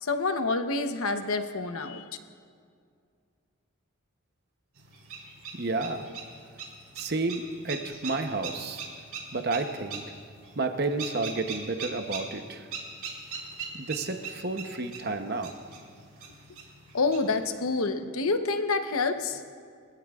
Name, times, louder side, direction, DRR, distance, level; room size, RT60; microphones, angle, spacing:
voice 1, 0.0-2.0 16.9-19.4, left 3 dB, 75° left, 7 dB, 0.9 m, -27 dB
sound 1, 4.8-17.4, right 5 dB, 85° right, 3.6 m, -42 dB
voice 2, 5.5-6.1 7.0-8.8 9.3-10.0 10.6-12.7 13.7-15.5, right 3 dB, 45° right, 6 dB, 0.8 m, -31 dB
23.5 x 15.0 x 2.4 m, 2.2 s
head